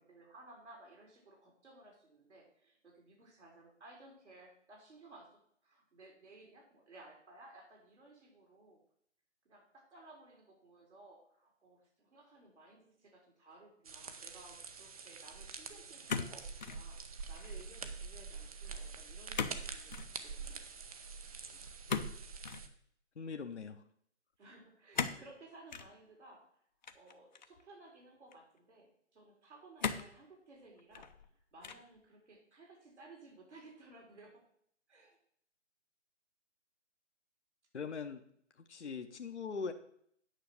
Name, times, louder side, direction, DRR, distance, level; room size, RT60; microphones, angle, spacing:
voice 1, 0.0-8.8 9.4-17.0 17.3-20.6 24.4-26.4 26.9-31.1 31.5-34.3 34.9-35.2, right 2 dB, 65° right, -1 dB, 4.0 m, -58 dB
sound 1, 13.8-22.7, right 5 dB, 30° right, 0.7 m, -46 dB
sound 2, 16.1-16.8 17.2-17.6 19.3-19.6 19.9-20.1 21.9-22.7 24.9-25.3 25.7-25.9 26.8-27.6 28.3-28.4 29.8-30.2 30.8-31.3 31.6-32.0, left 6 dB, 40° left, 0.7 m, -38 dB
voice 2, 23.2-23.8 37.7-38.2 38.5-39.7, left 5 dB, 65° left, 7 dB, 0.9 m, -41 dB
9.5 x 5.6 x 6.5 m, 0.66 s
figure-of-eight pair, 145°, 37 cm